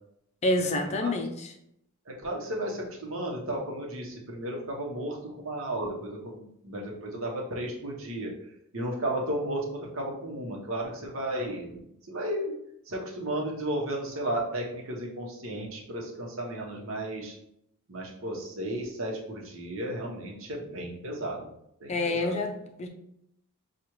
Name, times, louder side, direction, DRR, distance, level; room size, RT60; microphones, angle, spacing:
voice 1, 0.4-1.5 21.9-22.9, left 2 dB, 30° left, 4 dB, 0.4 m, -28 dB
voice 2, 2.1-8.3 8.7-11.8 12.1-12.5 12.9-17.3 17.9-21.5 21.8-22.4, right 1 dB, 70° right, -1 dB, 1.0 m, -34 dB
6.0 x 2.4 x 3.0 m, 0.76 s
head